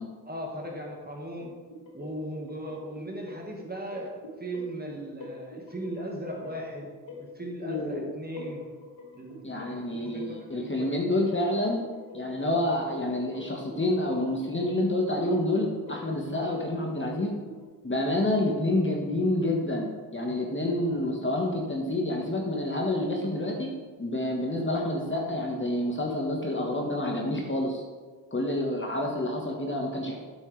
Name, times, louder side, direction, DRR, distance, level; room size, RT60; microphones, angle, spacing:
voice 1, 0.3-1.5 1.9-6.9 7.2-8.6 9.1-11.0 20.2-20.4, right 1 dB, 20° right, 0 dB, 1.9 m, -38 dB
sound 1, 1.4-17.6, left 2 dB, 60° left, 1.8 m, -47 dB
voice 2, 7.6-8.0 9.4-11.8 12.1-17.3 17.8-23.7 24.0-27.8 28.3-30.2, left 1 dB, 25° left, 0 dB, 1.6 m, -28 dB
8.4 x 6.4 x 3.4 m, 1.4 s
hypercardioid pair, 45°, 50 cm